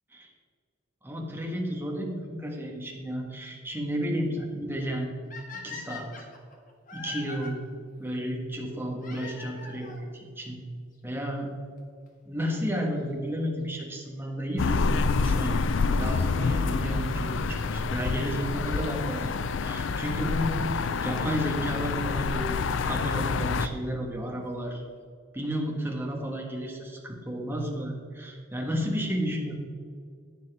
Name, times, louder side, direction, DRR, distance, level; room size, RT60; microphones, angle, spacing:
voice 1, 1.0-5.1 5.5-6.3 6.9-7.6 8.0-10.6 11.0-11.5 12.2-15.6 16.0-19.3 19.6-22.5 22.8-24.8 25.3-29.5, equal, 10° right, -1 dB, 1.4 m, -32 dB
sound 1, 5.3-7.5 9.0-10.0 11.0-11.1 11.8-11.9 12.1-12.2 14.0-14.3 17.1-17.2 18.3-18.4 19.8-19.9 20.2-20.3 20.5-20.6 20.8-20.9 21.1-21.2 21.3-21.4 21.6-21.7, left 5 dB, 40° left, 1.4 m, -42 dB
sound 2, 14.6-23.7, left 4 dB, 70° left, 0.4 m, -27 dB
10.5 x 9.5 x 3.5 m, 2.1 s
head